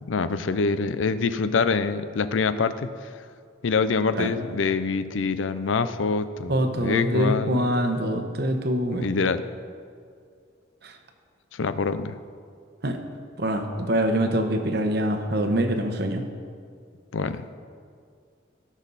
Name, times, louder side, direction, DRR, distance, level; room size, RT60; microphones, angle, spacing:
voice 1, 0.0-2.9 3.6-7.7 8.9-9.4 11.5-12.1 17.1-17.5, left 4 dB, 85° left, 12 dB, 0.5 m, -25 dB
voice 2, 6.5-9.0 12.8-13.0 13.4-16.2, right 1 dB, 55° right, 6 dB, 1.0 m, -24 dB
17.0 x 6.2 x 4.1 m, 2.2 s
head